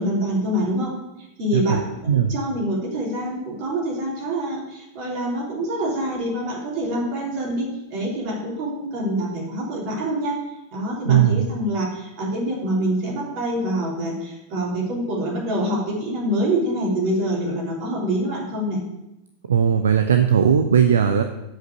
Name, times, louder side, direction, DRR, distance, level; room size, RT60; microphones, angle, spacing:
voice 1, 0.0-10.3 10.7-18.8, right 1 dB, 45° right, -3 dB, 3.3 m, -26 dB
voice 2, 11.1-11.5 19.5-21.2, right 8 dB, 65° right, 7 dB, 0.5 m, -18 dB
7.6 x 5.3 x 6.7 m, 0.92 s
figure-of-eight pair, 90°, 0 cm